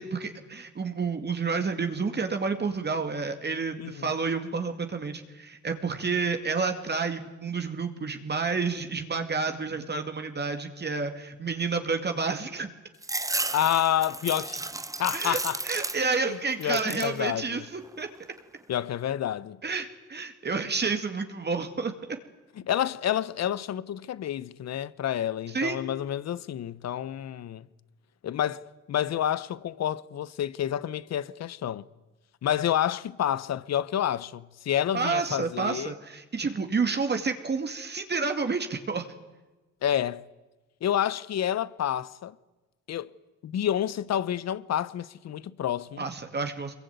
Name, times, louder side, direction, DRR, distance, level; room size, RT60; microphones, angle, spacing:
voice 1, 0.0-12.7 15.1-15.4 15.6-18.1 19.6-22.2 25.5-25.8 34.9-39.1 46.0-46.7, right 4 dB, 35° right, 2.2 m, -30 dB
voice 2, 3.8-4.1 13.5-14.6 15.0-15.6 16.3-17.6 18.7-19.6 22.6-27.7 28.2-31.8 32.4-35.9 39.8-40.2 40.8-42.3 42.9-43.1 43.4-46.1, left 10 dB, 60° left, 1.0 m, -29 dB
sound 1, 13.0-16.3 16.6-17.2 17.7-18.4, right 2 dB, 10° right, 0.9 m, -33 dB
23.5 x 22.0 x 9.4 m
cardioid pair, 90°, 30 cm